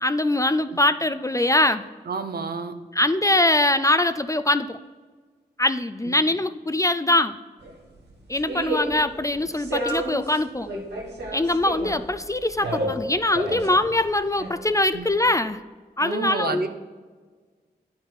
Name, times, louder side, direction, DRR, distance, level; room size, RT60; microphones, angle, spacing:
voice 1, 0.0-1.9 3.0-4.8 5.6-7.4 8.3-10.7 11.3-15.6 16.0-16.6, left 1 dB, 20° left, 11 dB, 0.4 m, -22 dB
voice 2, 2.1-2.7 6.0-6.2 14.9-15.1 16.0-16.7, right 4 dB, 65° right, 7 dB, 0.8 m, -30 dB
sound 1, 7.6-15.3, right 1 dB, 90° right, 1.4 m, -32 dB
9.7 x 5.8 x 4.5 m, 1.5 s
cardioid pair, 40°, 17 cm